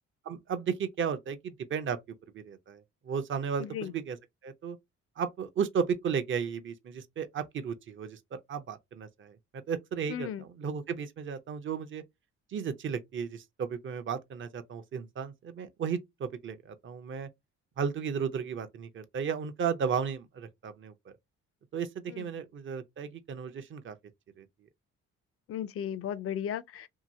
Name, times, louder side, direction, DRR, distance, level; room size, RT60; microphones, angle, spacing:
voice 1, 0.3-2.0 2.3-4.2 4.4-4.8 5.2-9.4 9.7-12.0 12.5-17.3 17.8-20.9 21.7-24.0 24.4-24.5, right 6 dB, 40° right, 0.6 m, -34 dB
voice 2, 3.6-3.9 10.1-10.4 22.1-22.3 25.5-26.9, left 9 dB, 50° left, 0.4 m, -35 dB
2.9 x 2.7 x 2.5 m
cardioid pair, 90°, 30 cm